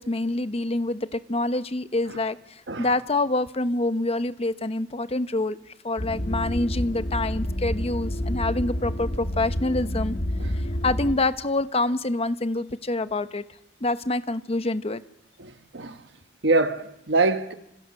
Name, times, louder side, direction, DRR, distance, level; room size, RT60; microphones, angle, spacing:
voice 1, 0.0-5.6 5.8-10.2 10.5-13.4 13.8-15.0, left 2 dB, 35° left, 0.9 m, -26 dB
sound 1, 6.0-11.2, equal, 70° left, 2.3 m, -29 dB
voice 2, 15.4-16.0 16.4-17.5, right 3 dB, 70° right, 1.4 m, -24 dB
29.0 x 26.5 x 6.6 m
head